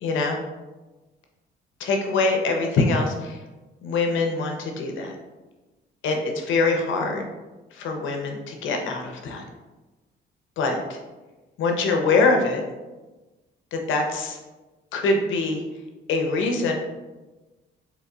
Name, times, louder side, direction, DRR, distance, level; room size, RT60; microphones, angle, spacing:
voice 1, 0.0-0.4 1.8-3.4 3.8-5.1 6.0-7.3 7.7-9.4 10.6-11.0 11.6-12.6 13.7-14.4 14.9-15.6 16.1-16.8, left 3 dB, 80° left, 3 dB, 0.6 m, -24 dB
3.7 x 3.4 x 2.3 m, 1.2 s
cardioid pair, 90°, 20 cm